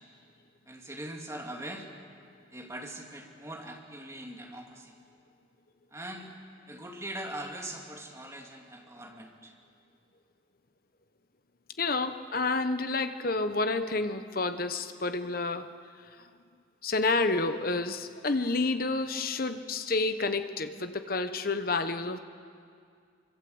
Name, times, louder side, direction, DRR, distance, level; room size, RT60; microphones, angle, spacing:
voice 1, 0.7-1.9 2.5-4.9 5.9-6.3 6.7-9.5, right 1 dB, 15° right, 1 dB, 2.5 m, -41 dB
voice 2, 11.8-15.7 16.8-22.2, left 3 dB, 50° left, 9 dB, 1.1 m, -29 dB
25.0 x 24.5 x 8.0 m, 2.3 s
head